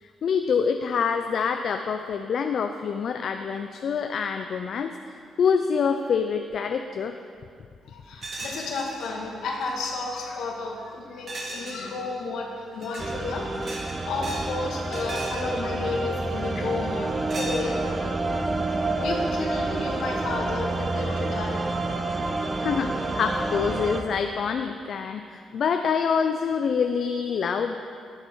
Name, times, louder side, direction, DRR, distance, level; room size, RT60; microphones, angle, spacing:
voice 1, 0.0-7.1 16.6-16.7 22.6-27.8, left 6 dB, 65° left, 6 dB, 0.5 m, -26 dB
voice 2, 7.8-17.8 19.0-21.6, left 3 dB, 80° left, 0 dB, 1.7 m, -32 dB
sound 1, 8.2-9.1 9.5-9.9 11.3-11.8 12.7-13.1 13.5-14.5 14.8-15.5 16.4-16.7 17.3-18.0, right 2 dB, 55° right, 2.4 m, -37 dB
sound 2, 13.0-24.0, right 2 dB, 30° right, 0.9 m, -28 dB
10.5 x 9.7 x 4.5 m, 2.3 s
cardioid pair, 70°, 0 cm